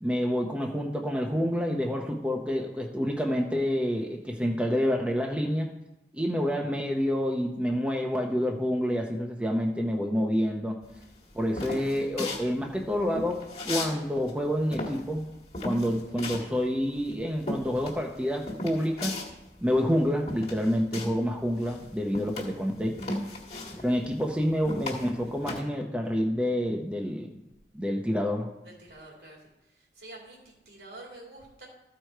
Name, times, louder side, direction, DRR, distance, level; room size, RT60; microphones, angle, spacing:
voice 1, 0.0-5.7 6.1-10.8 11.3-15.3 15.6-19.2 19.6-23.0 23.7-27.4 27.7-28.5, equal, 5° right, 1 dB, 0.7 m, -28 dB
sound 1, 11.0-14.0 14.2-21.3 21.6-25.6, left 2 dB, 35° left, 1.7 m, -36 dB
voice 2, 23.6-24.0 25.2-25.3 28.6-31.7, right 2 dB, 75° right, -2 dB, 2.9 m, -49 dB
14.0 x 4.8 x 4.5 m, 0.96 s
head